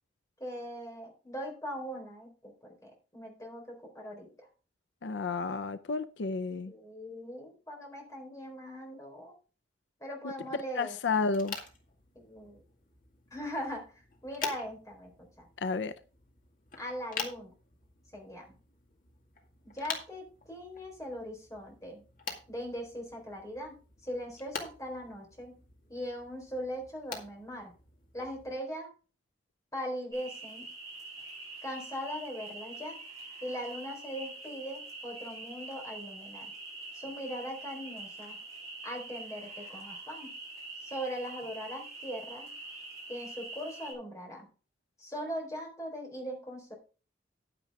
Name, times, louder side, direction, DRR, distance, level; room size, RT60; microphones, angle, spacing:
voice 1, 0.4-4.5 6.7-9.3 10.0-11.0 12.1-12.6 13.3-13.9 14.2-15.4 16.8-17.5 18.1-18.5 19.7-22.0 22.5-23.8 24.0-25.5 25.9-27.7 28.1-28.9 29.7-30.7 31.6-33.0 33.4-36.5 36.9-38.4 38.8-40.3 40.8-42.5 43.1-44.5 45.0-46.7, equal, 20° left, 4.1 m, -40 dB
voice 2, 5.0-6.7 10.2-10.3 10.7-11.6 15.6-15.9, left 4 dB, 80° left, 0.6 m, -31 dB
sound 1, 11.3-28.5, left 5 dB, 45° left, 2.1 m, -46 dB
sound 2, 30.1-43.9, right 3 dB, 20° right, 6.4 m, -45 dB
10.0 x 9.9 x 3.6 m
head